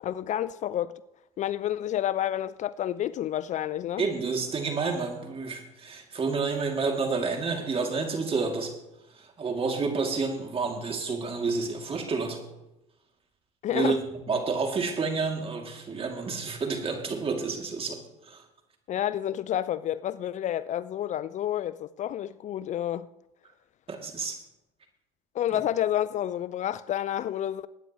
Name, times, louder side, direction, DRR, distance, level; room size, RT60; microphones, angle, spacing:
voice 1, 0.0-0.9 1.4-4.0 13.6-14.0 18.9-23.1 25.3-27.7, left 11 dB, 45° left, 0.4 m, -29 dB
voice 2, 4.0-8.7 9.1-12.4 13.7-18.0 18.3-18.4 23.9-24.4, right 4 dB, 35° right, 2.6 m, -29 dB
21.0 x 9.4 x 3.1 m
supercardioid pair, 80°, 17 cm